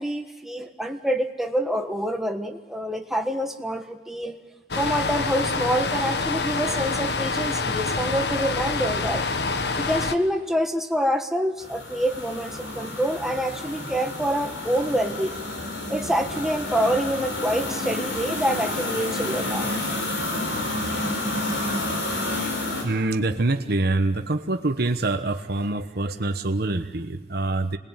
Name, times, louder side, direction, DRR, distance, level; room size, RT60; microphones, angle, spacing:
voice 1, 0.0-4.4 4.7-9.2 9.8-15.4 15.9-19.8, equal, ahead, 4 dB, 1.5 m, -26 dB
sound 1, 4.7-10.2, left 3 dB, 65° left, 1.3 m, -26 dB
sound 2, 11.6-22.8, left 2 dB, 85° left, 5.5 m, -30 dB
voice 2, 22.8-27.8, right 2 dB, 60° right, 6 dB, 1.2 m, -25 dB
26.5 x 20.0 x 9.1 m, 1.2 s
head